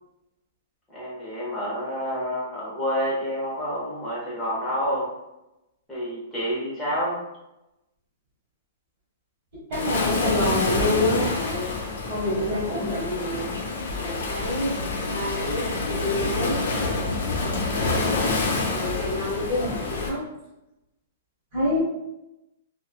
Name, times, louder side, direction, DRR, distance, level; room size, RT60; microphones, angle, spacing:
voice 1, 0.9-5.1 5.9-7.2, equal, 5° left, -8 dB, 0.7 m, -28 dB
Waves surf, 9.7-20.1, left 3 dB, 75° left, 0.6 m, -27 dB
voice 2, 9.7-11.7 12.1-13.5 14.0-16.6 17.6-18.3 18.7-20.2 21.5-21.8, left 1 dB, 30° right, -7 dB, 1.4 m, -27 dB
3.0 x 2.1 x 2.3 m, 0.91 s
hypercardioid pair, 180°, 0 cm